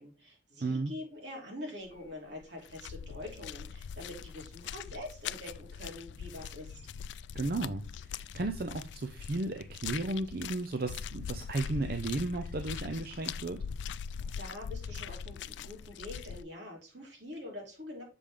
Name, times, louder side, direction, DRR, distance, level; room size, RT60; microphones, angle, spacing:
voice 1, 0.0-6.8 14.2-18.0, left 1 dB, 80° right, -1 dB, 3.0 m, -45 dB
voice 2, 0.6-0.9 7.3-13.6, right 2 dB, 55° right, 7 dB, 0.6 m, -34 dB
sound 1, 1.9-2.1 2.4-16.4, left 7 dB, 80° left, 0.3 m, -42 dB
6.9 x 5.1 x 3.5 m, 0.32 s
head